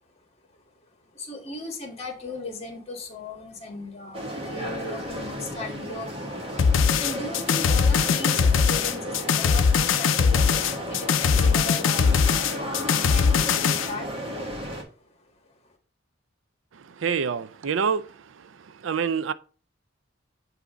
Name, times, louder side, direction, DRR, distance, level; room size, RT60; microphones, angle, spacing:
voice 1, 1.1-15.8, left 2 dB, 30° left, 1.5 m, -38 dB
sound 1, 4.1-14.8, equal, 30° right, 1.4 m, -33 dB
sound 2, 6.6-13.9, left 6 dB, 90° left, 0.5 m, -21 dB
voice 2, 17.0-18.1 18.8-19.3, right 6 dB, 85° right, 0.4 m, -25 dB
8.2 x 2.8 x 5.0 m
head